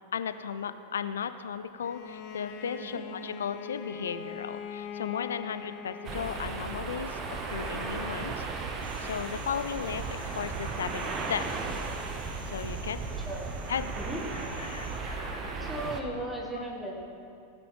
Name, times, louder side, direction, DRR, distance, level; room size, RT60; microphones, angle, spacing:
voice 1, 0.1-8.5 9.0-11.8 12.5-13.2 13.7-13.9 14.3-15.7 16.6-16.7, left 7 dB, 65° left, 12 dB, 0.5 m, -36 dB
Bowed string instrument, 1.8-7.0, left 6 dB, 40° left, 0.9 m, -42 dB
sound 1, 6.0-16.0, right 4 dB, 30° right, 0.9 m, -35 dB
sound 2, 8.8-15.0, right 1 dB, 75° right, 2.2 m, -54 dB
voice 2, 15.6-16.9, right 1 dB, ahead, -2 dB, 1.8 m, -36 dB
16.5 x 9.9 x 3.4 m, 2.6 s
figure-of-eight pair, 90°, 0 cm